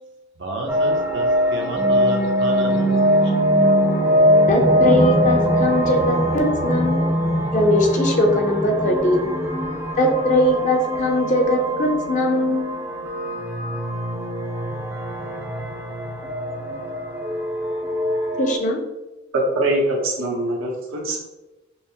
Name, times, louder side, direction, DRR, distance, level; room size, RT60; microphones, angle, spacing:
voice 1, 0.4-3.1, right 1 dB, 65° right, 1 dB, 0.7 m, -31 dB
sound 1, 0.7-18.6, equal, 10° right, 0.4 m, -22 dB
voice 2, 4.5-7.0 7.5-9.3 10.0-12.7 18.4-18.8, left 1 dB, 40° left, 2 dB, 0.6 m, -20 dB
voice 3, 19.5-21.2, right 1 dB, 85° right, -2 dB, 1.0 m, -23 dB
5.5 x 2.0 x 2.8 m, 1.1 s
head